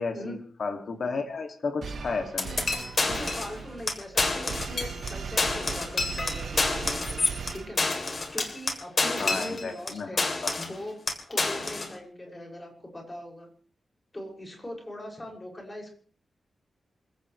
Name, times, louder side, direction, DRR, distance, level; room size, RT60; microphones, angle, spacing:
voice 1, 0.0-2.6 9.2-10.6, left 4 dB, 60° left, 4 dB, 2.4 m, -33 dB
sound 1, 1.8-8.1, right 5 dB, 65° right, 1.2 m, -38 dB
sound 2, 2.4-3.6 3.9-4.0 4.2-5.1 5.4-9.9 10.2-10.8 11.1-11.9, left 3 dB, 40° left, 3.2 m, -28 dB
voice 2, 3.0-7.2 7.5-10.3 10.6-11.0 11.3-13.5 14.1-15.9, left 1 dB, 20° left, 0 dB, 6.5 m, -40 dB
27.0 x 16.0 x 3.3 m, 0.44 s
wide cardioid pair, 155°, 0 cm